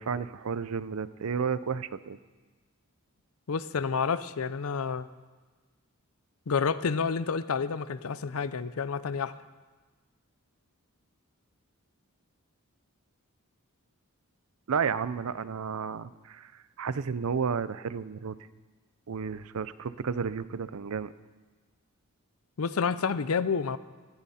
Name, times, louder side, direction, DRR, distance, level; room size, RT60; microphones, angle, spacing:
voice 1, 0.0-2.2 14.7-18.4 19.1-21.1, right 6 dB, 80° right, 16 dB, 0.5 m, -32 dB
voice 2, 3.5-5.1 6.5-9.3 22.6-23.8, left 5 dB, 75° left, 15 dB, 0.6 m, -29 dB
19.0 x 13.5 x 4.2 m, 1.3 s
head